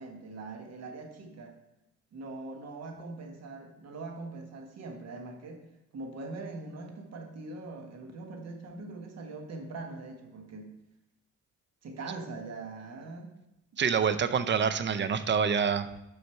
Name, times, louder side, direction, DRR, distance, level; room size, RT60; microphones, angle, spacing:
voice 1, 0.0-1.6 2.1-5.6 5.9-10.7 11.8-13.3, right 3 dB, 60° right, 4 dB, 1.5 m, -42 dB
voice 2, 13.8-16.1, right 6 dB, 40° right, 12 dB, 0.6 m, -27 dB
6.4 x 5.6 x 4.5 m, 0.88 s
cardioid pair, 90°, 30 cm